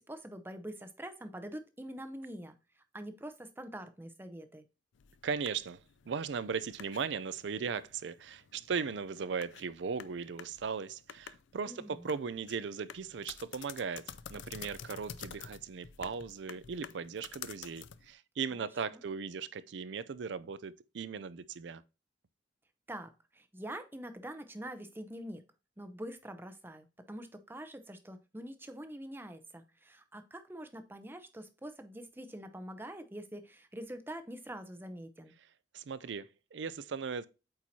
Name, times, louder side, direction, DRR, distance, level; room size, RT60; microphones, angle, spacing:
voice 1, 0.0-2.6 2.9-4.6 11.6-12.0 18.5-19.0 22.9-25.4 25.8-35.3, right 1 dB, 10° right, 0.6 m, -45 dB
sound 1, 4.9-18.1, left 8 dB, 80° left, 0.4 m, -50 dB
voice 2, 5.2-5.8 6.1-21.8 35.7-37.3, right 5 dB, 70° right, 0.4 m, -38 dB
8.5 x 4.5 x 2.7 m
head